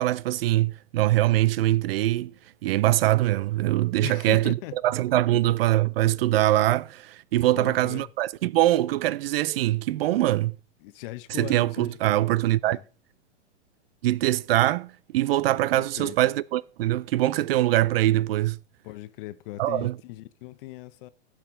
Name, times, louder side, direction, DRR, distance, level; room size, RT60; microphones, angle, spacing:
voice 1, 0.0-2.3 2.6-4.5 4.8-10.6 11.4-12.8 14.0-18.6 19.6-19.9, right 15 dB, 55° right, 0.5 m, -23 dB
voice 2, 4.0-4.7 5.3-5.4 7.5-8.1 10.8-12.2 12.6-12.8 15.8-16.2 18.8-21.1, left 17 dB, 45° left, 0.9 m, -39 dB
15.5 x 5.9 x 3.7 m
hypercardioid pair, 110°, 37 cm